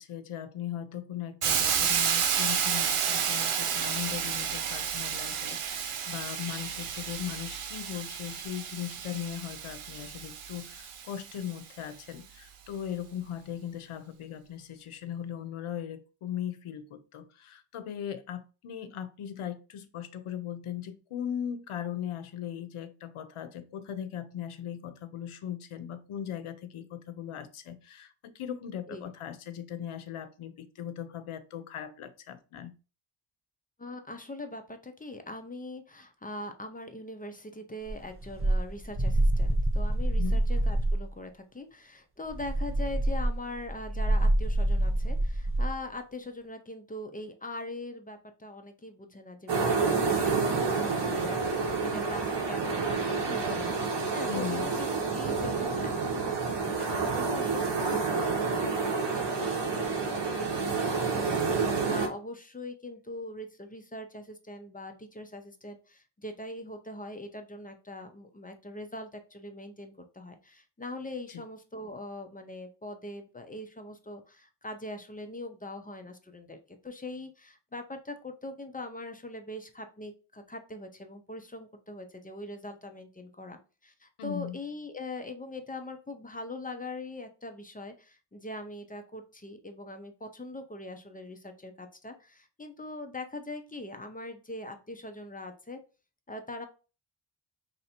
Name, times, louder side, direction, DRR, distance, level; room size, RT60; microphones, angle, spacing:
voice 1, 0.0-32.7 40.2-40.4 54.3-54.7 71.3-71.4 84.2-84.6, left 9 dB, 80° left, 0.7 m, -38 dB
Hiss, 1.4-11.3, right 7 dB, 85° right, 0.7 m, -31 dB
voice 2, 33.8-53.7 54.1-95.8 96.3-96.7, left 2 dB, 20° left, 0.5 m, -42 dB
sound 1, 37.9-41.1 42.3-45.7, right 1 dB, 25° right, 0.7 m, -26 dB
sound 2, 49.5-62.1, right 4 dB, 55° right, 0.9 m, -29 dB
3.2 x 2.7 x 4.2 m
wide cardioid pair, 100°, 49 cm